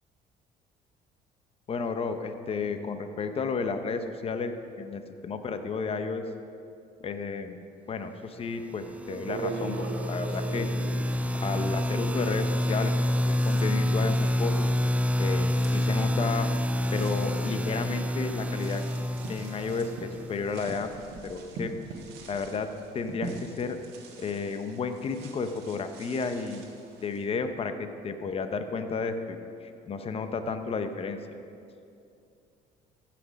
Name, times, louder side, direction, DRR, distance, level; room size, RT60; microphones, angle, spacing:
voice 1, 1.7-6.2 7.0-7.6 7.9-10.7 11.3-14.7 15.2-16.5 16.9-18.8 19.3-20.9 21.2-21.7 22.3-22.7 22.9-23.8 24.2-26.6 27.0-27.7 28.0-31.4, left 4 dB, 35° left, 8 dB, 0.7 m, -32 dB
sound 1, 8.5-8.6 9.0-12.2 12.5-27.2, right 4 dB, 80° right, 1.5 m, -44 dB
sound 2, 8.8-20.6, left 1 dB, 10° right, 0.3 m, -28 dB
sound 3, 19.2-24.7, right 2 dB, 65° right, 1.4 m, -44 dB
14.0 x 6.0 x 5.2 m, 2.5 s
cardioid pair, 110°, 17 cm